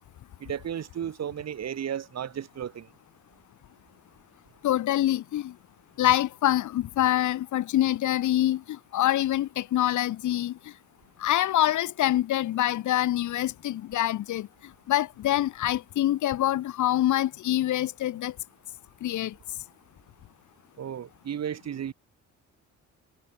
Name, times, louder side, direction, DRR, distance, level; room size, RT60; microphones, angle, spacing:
voice 1, 0.4-2.9 20.8-21.9, right 9 dB, 60° right, 4.9 m, -34 dB
voice 2, 4.6-5.5 6.0-10.6 11.2-14.5 14.9-18.3 19.0-19.3, left 13 dB, 75° left, 1.7 m, -25 dB
cardioid pair, 90°, 30 cm